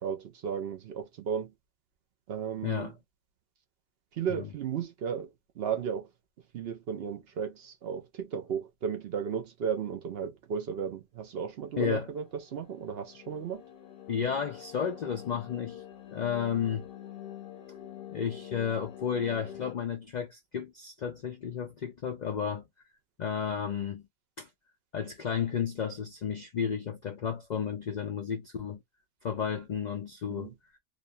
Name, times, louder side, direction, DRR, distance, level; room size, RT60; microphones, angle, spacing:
voice 1, 0.0-1.5 2.3-2.9 4.1-6.1 6.5-13.6 30.3-30.5, right 7 dB, 60° right, 0.7 m, -34 dB
voice 2, 2.6-2.9 4.3-4.5 11.8-12.1 14.1-16.9 18.1-22.6 23.2-24.0 24.4-24.5 24.9-28.8 29.2-30.5, left 7 dB, 80° left, 0.4 m, -32 dB
sound 1, 12.1-19.7, left 10 dB, 55° left, 0.8 m, -46 dB
2.6 x 2.2 x 2.5 m
omnidirectional pair, 1.4 m